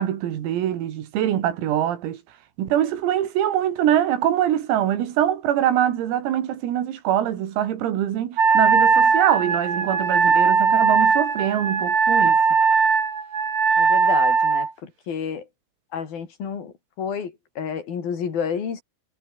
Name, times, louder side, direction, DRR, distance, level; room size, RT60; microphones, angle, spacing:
voice 1, 0.0-2.2 2.6-12.4, right 11 dB, 85° right, 5.3 m, -23 dB
Wind instrument woodwind instrument, 8.4-14.7, right 5 dB, 35° right, 4.9 m, -19 dB
voice 2, 13.8-15.5 15.9-18.8, left 7 dB, 50° left, 5.3 m, -30 dB
omnidirectional pair, 6.0 m